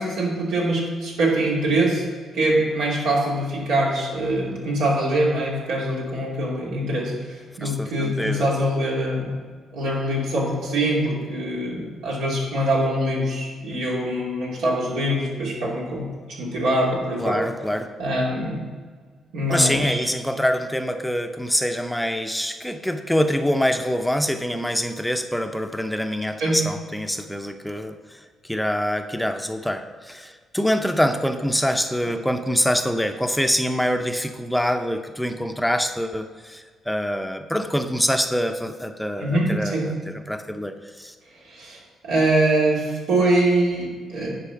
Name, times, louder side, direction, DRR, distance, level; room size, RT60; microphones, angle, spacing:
voice 1, 0.0-2.0 2.3-9.4 9.7-16.1 16.4-17.4 18.0-18.6 19.3-20.0 26.4-26.5 39.2-39.9 41.4-44.3, right 1 dB, 90° right, -4 dB, 2.8 m, -23 dB
voice 2, 7.6-8.5 17.2-17.9 19.5-39.8 40.1-41.1, equal, 5° left, 7 dB, 0.6 m, -25 dB
10.5 x 4.7 x 5.9 m, 1.5 s
cardioid pair, 90°, 0 cm